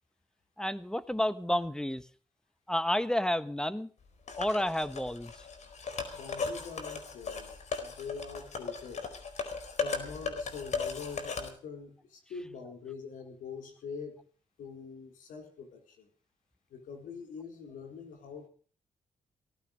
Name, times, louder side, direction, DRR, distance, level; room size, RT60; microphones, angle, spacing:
voice 1, 0.6-2.0 2.7-3.9 4.4-5.3, left 1 dB, 5° left, 1.4 m, -30 dB
sound 1, 4.3-11.5, left 5 dB, 65° left, 4.4 m, -37 dB
voice 2, 6.1-9.0 9.8-14.2 14.6-16.1 16.7-18.5, left 5 dB, 85° left, 4.7 m, -44 dB
17.0 x 15.5 x 5.2 m
cardioid pair, 65°, 13 cm